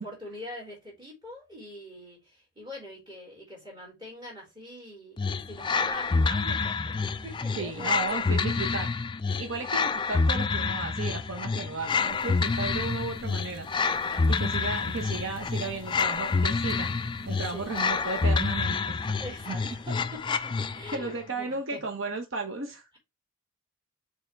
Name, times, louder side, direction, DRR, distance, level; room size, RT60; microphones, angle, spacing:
voice 1, 0.0-7.0 7.2-8.5 9.3-9.5 14.0-14.7 17.4-17.7 19.2-21.8, equal, 20° right, 4.0 m, -44 dB
sound 1, 5.2-21.1, left 4 dB, 20° left, 0.3 m, -28 dB
voice 2, 7.6-8.9 9.3-16.9 17.2-19.0 19.5-19.6 20.9-22.8, right 3 dB, 60° right, 1.0 m, -34 dB
sound 2, 11.9-18.7, right 1 dB, 90° right, 1.2 m, -50 dB
6.7 x 3.5 x 4.6 m
head